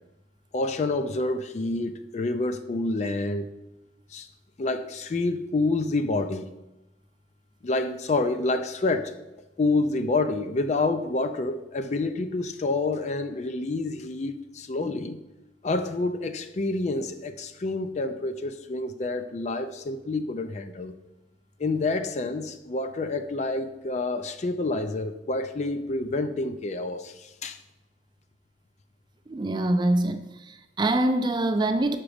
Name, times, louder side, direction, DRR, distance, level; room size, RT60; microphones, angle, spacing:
voice 1, 0.5-3.5 4.1-4.3 4.6-6.5 7.6-9.2 9.6-15.2 15.6-21.0 21.6-27.6, left 2 dB, 40° left, 0.4 m, -28 dB
voice 2, 29.3-32.0, right 1 dB, 25° right, 0.4 m, -25 dB
5.9 x 5.1 x 5.0 m
head